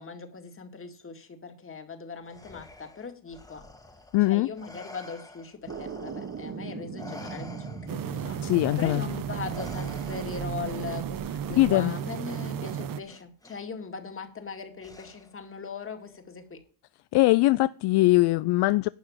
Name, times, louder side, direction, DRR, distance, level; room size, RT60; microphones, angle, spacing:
voice 1, 0.0-3.6 4.3-8.4 8.8-16.6, left 5 dB, 30° left, 2.3 m, -39 dB
Respiratory sounds, 2.3-6.6 7.0-10.6 11.9-12.1 13.0-13.6 14.8-15.5, left 2 dB, 10° left, 1.5 m, -48 dB
voice 2, 4.1-4.5 8.4-9.1 11.5-11.9 17.1-18.9, left 18 dB, 65° left, 0.5 m, -21 dB
sound 1, 5.7-11.7, right 5 dB, 35° right, 1.4 m, -41 dB
sound 2, 7.9-13.0, right 9 dB, 50° right, 0.9 m, -34 dB
11.5 x 5.9 x 8.8 m
cardioid pair, 115°, 44 cm